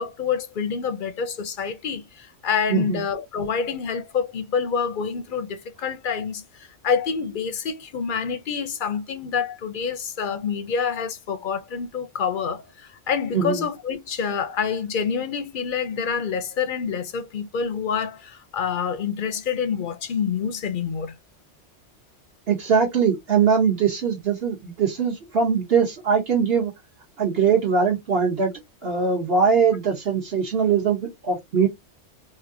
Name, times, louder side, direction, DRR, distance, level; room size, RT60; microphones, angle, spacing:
voice 1, 0.0-21.1, left 6 dB, 55° left, 0.6 m, -27 dB
voice 2, 22.5-26.7 27.2-28.5 28.8-31.7, right 6 dB, 55° right, 1.2 m, -21 dB
3.1 x 2.7 x 2.5 m
omnidirectional pair, 1.2 m